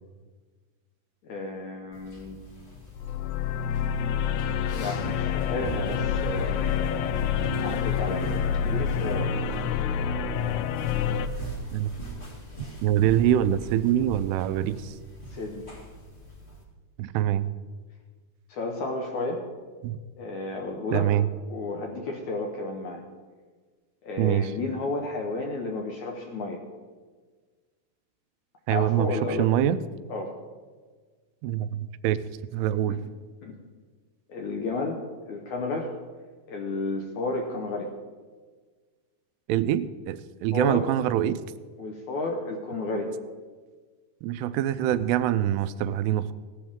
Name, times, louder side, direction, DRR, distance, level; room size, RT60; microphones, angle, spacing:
voice 1, 1.2-2.4 4.8-6.9 7.6-9.3 15.3-15.7 18.5-19.4 20.2-21.1 21.5-23.0 24.0-26.6 28.7-29.5 30.1-30.3 32.9-33.0 33.4-33.5 34.3-35.0 35.3-35.9 36.5-37.9 40.5-40.9 41.8-43.1, left 2 dB, 70° left, 1 dB, 1.9 m, -32 dB
sound 1, 1.9-16.6, right 2 dB, 35° left, 1.0 m, -41 dB
sound 2, 2.9-11.3, left 7 dB, 85° left, 2.7 m, -27 dB
voice 2, 12.8-14.9 17.0-17.5 19.8-20.0 20.9-21.3 24.2-24.5 28.7-29.8 31.4-32.2 32.5-33.0 39.5-41.4 44.2-46.3, right 11 dB, 90° right, 13 dB, 2.7 m, -24 dB
17.0 x 12.0 x 3.6 m, 1.5 s
omnidirectional pair, 4.6 m